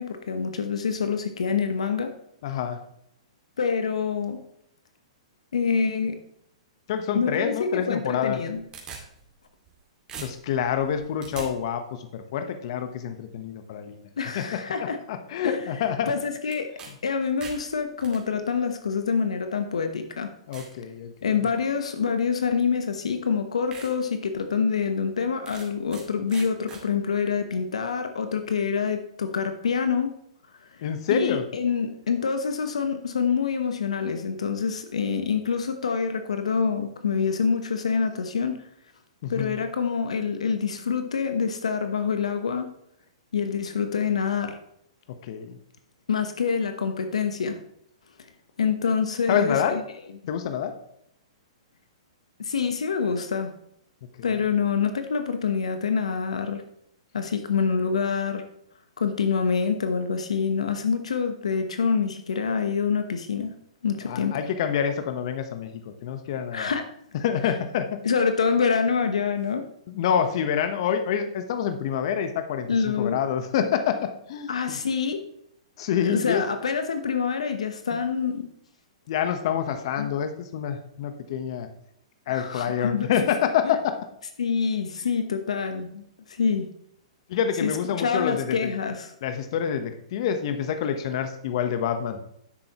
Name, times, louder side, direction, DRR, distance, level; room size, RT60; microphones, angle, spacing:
voice 1, 0.0-2.1 3.6-4.4 5.5-6.2 7.1-8.6 14.2-15.0 15.4-15.6 16.1-16.7 17.0-20.3 21.2-30.2 31.1-38.5 39.3-42.7 43.3-44.6 46.1-47.6 48.6-49.8 52.4-53.5 54.2-56.6 57.1-58.5 59.0-63.6 63.8-64.4 66.5-66.9 68.0-69.7 72.7-73.2 74.5-75.2 76.0-78.5 80.0-80.1 82.3-83.1 83.6-83.7 84.4-86.7 87.6-87.7 88.0-89.1, left 6 dB, 80° left, 7 dB, 1.1 m, -26 dB
voice 2, 2.4-2.8 6.9-8.4 10.2-14.0 14.3-16.1 20.5-21.1 30.8-31.4 39.2-39.6 45.3-45.6 49.3-49.8 50.3-50.7 64.1-66.7 67.2-68.0 69.9-74.8 75.8-76.4 77.9-78.0 79.1-81.7 82.3-83.9 87.3-88.7 89.2-92.2, left 8 dB, 55° left, 8 dB, 1.1 m, -27 dB
sound 1, 8.3-9.8 10.1-11.5 16.5-16.9 17.2-18.2 19.1-19.2 19.8-19.9 20.5-20.8 21.3-21.6 22.8-22.9 23.3-23.4 23.7-23.9 24.3-24.4 25.5-26.0 26.3-26.8, right 5 dB, 20° right, 2.3 m, -42 dB
10.5 x 8.0 x 3.0 m, 0.73 s
hypercardioid pair, 125°, 3 cm